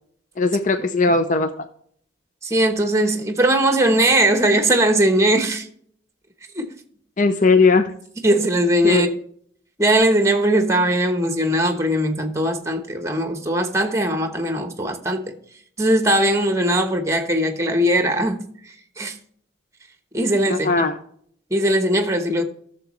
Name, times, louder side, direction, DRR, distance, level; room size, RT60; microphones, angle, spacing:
voice 1, 0.4-1.6 7.2-7.9 8.8-9.1 20.5-21.0, left 4 dB, 40° left, 0.5 m, -18 dB
voice 2, 2.4-5.7 6.5-6.7 8.2-9.1 9.8-15.3 15.8-18.4 19.0-19.2 20.1-20.9 21.5-22.4, right 1 dB, 15° right, 1.1 m, -19 dB
12.5 x 7.1 x 3.1 m
head